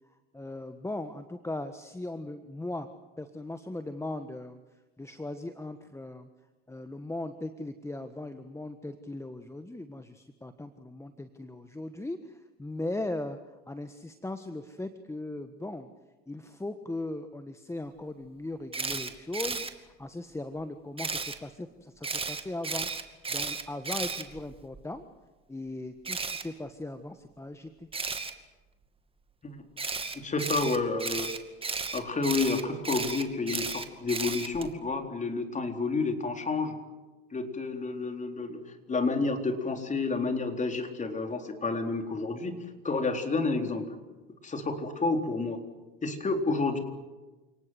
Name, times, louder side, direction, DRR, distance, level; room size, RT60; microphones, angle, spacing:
voice 1, 0.3-2.9 3.2-4.6 5.0-6.3 6.7-13.4 13.7-15.9 16.3-19.7 20.0-22.9 23.3-25.0 25.5-27.9, left 2 dB, 10° left, 9 dB, 1.4 m, -38 dB
Camera, 18.7-19.7 21.0-21.4 22.0-24.8 26.0-26.4 27.9-28.3 29.8-34.7, right 4 dB, 20° right, 2.3 m, -34 dB
voice 2, 30.1-31.3 31.9-36.7 37.3-38.6 38.9-44.0 44.4-45.6 46.0-46.8, left 3 dB, 25° left, 5 dB, 4.1 m, -30 dB
29.0 x 19.0 x 7.9 m, 1.2 s
hypercardioid pair, 80°, 29 cm